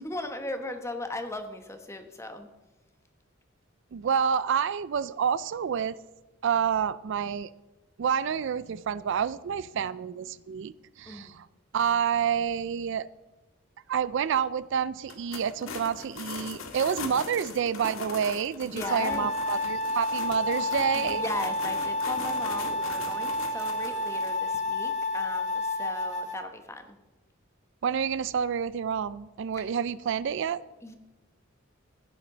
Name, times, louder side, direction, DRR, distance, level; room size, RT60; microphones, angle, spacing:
voice 1, 0.0-2.5 11.1-11.3 18.6-19.3 20.9-27.0 29.6-29.7 30.8-31.0, left 1 dB, 15° left, 1.2 m, -38 dB
voice 2, 3.9-6.0 6.4-7.5 8.0-11.5 11.7-13.1 13.9-21.2 27.8-30.6, right 7 dB, 65° right, 0.4 m, -28 dB
sound 1, 15.0-24.3, left 4 dB, 80° left, 1.7 m, -40 dB
sound 2, 18.8-26.4, left 2 dB, 35° left, 1.7 m, -30 dB
15.5 x 9.9 x 3.9 m
head